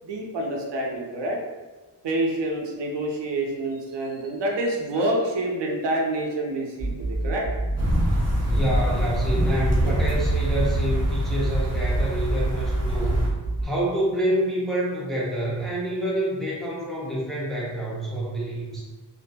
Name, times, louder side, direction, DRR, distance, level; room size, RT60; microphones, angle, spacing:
voice 1, 0.0-1.4 2.0-7.5, right 1 dB, 80° right, 0 dB, 0.6 m, -27 dB
sound 1, 6.8-13.6, right 2 dB, 45° left, 1.2 m, -28 dB
sound 2, 7.8-13.3, right 1 dB, 40° right, 0.8 m, -25 dB
voice 2, 8.5-13.3 13.6-18.8, equal, ahead, -7 dB, 0.5 m, -27 dB
2.6 x 2.6 x 2.2 m, 1.3 s
wide cardioid pair, 170°, 42 cm